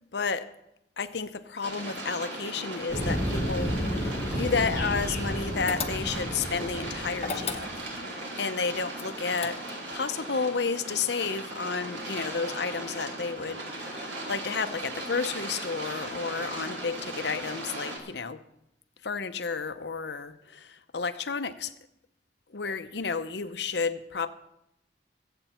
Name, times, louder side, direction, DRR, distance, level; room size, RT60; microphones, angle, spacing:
voice 1, 0.1-0.5 1.0-7.7 8.4-9.6 9.9-18.4 19.0-21.7 22.5-24.3, left 5 dB, 70° left, 0.8 m, -31 dB
sound 1, 1.6-18.0, right 1 dB, 80° right, 3.2 m, -38 dB
sound 2, 2.9-7.8, equal, 20° left, 6.0 m, -32 dB
sound 3, 5.7-6.4 7.2-8.1 8.9-9.9, left 6 dB, 35° left, 0.8 m, -35 dB
22.0 x 8.0 x 4.4 m
head